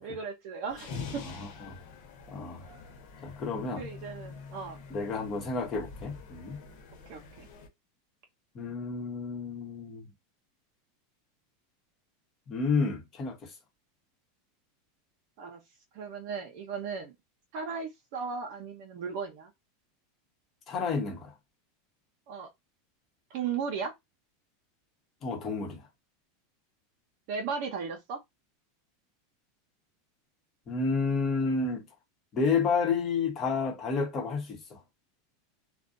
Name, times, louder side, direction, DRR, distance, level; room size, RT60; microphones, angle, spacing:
voice 1, 0.0-1.2 3.8-4.8 7.1-7.5 15.4-15.6 15.9-17.1 17.5-19.5 22.3-22.5 23.3-23.9 27.3-28.2, right 5 dB, 60° right, 0.7 m, -36 dB
sound 1, 0.7-7.7, left 5 dB, 60° left, 1.1 m, -45 dB
voice 2, 1.2-1.8 2.3-2.7 3.2-3.9 4.9-6.6 8.5-10.1 12.5-13.5 20.7-21.3 25.2-25.8 30.7-31.8 32.3-34.8, left 4 dB, 35° left, 0.9 m, -30 dB
2.5 x 2.2 x 2.5 m
supercardioid pair, 130°, 0 cm